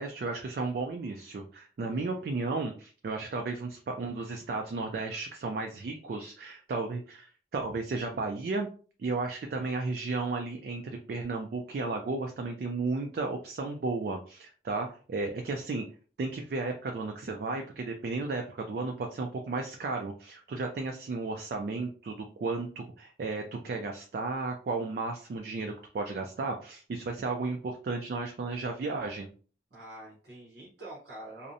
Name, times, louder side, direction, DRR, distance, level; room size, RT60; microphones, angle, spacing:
voice 1, 0.0-8.7 9.0-15.8 16.2-29.3, right 3 dB, 55° right, 3 dB, 0.3 m, -34 dB
voice 2, 29.7-31.5, right 1 dB, 80° right, -6 dB, 0.8 m, -46 dB
2.6 x 2.0 x 2.5 m, 0.39 s
head